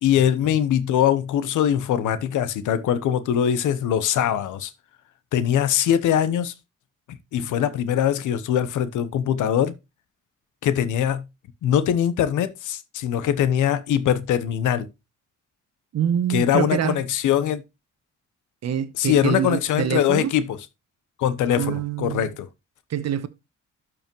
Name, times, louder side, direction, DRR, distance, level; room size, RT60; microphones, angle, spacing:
voice 1, 0.0-4.7 5.3-6.5 7.1-9.7 10.6-11.2 11.6-14.9 16.3-17.6 19.0-20.6 21.2-22.5, left 10 dB, 80° left, 0.9 m, -22 dB
voice 2, 15.9-17.0 18.6-20.3 21.5-22.3 22.9-23.3, right 9 dB, 60° right, 1.0 m, -25 dB
12.5 x 5.0 x 3.0 m
cardioid pair, 90°, 30 cm